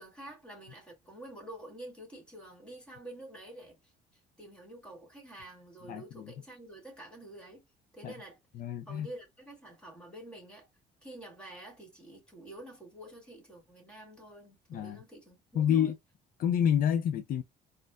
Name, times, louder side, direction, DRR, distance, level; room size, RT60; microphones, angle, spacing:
voice 1, 0.0-3.9 4.4-7.6 7.9-8.4 8.9-10.7 11.0-15.9, right 1 dB, 5° left, 2.0 m, -48 dB
voice 2, 5.9-6.2 8.0-8.1 8.6-9.1 14.7-15.0 15.6-15.9 16.4-17.4, left 9 dB, 55° left, 0.4 m, -28 dB
4.1 x 2.5 x 2.3 m
cardioid pair, 110°, 17 cm